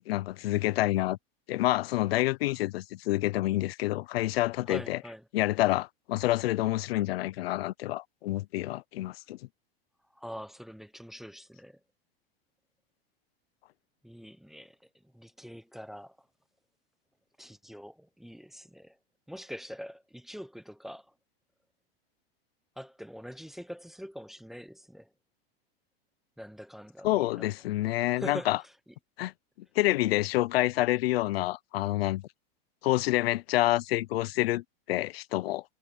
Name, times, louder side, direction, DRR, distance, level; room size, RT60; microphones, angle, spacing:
voice 1, 0.1-1.2 1.5-5.0 5.3-9.4 27.0-28.6 29.2-29.3 29.8-32.2 32.8-35.6, left 17 dB, 80° left, 0.8 m, -28 dB
voice 2, 4.7-5.2 10.2-11.8 14.0-14.8 15.1-16.2 17.4-19.0 19.3-21.1 22.8-25.1 26.4-27.5 28.1-28.6, equal, ahead, 1.0 m, -44 dB
supercardioid pair, 135°, 30 cm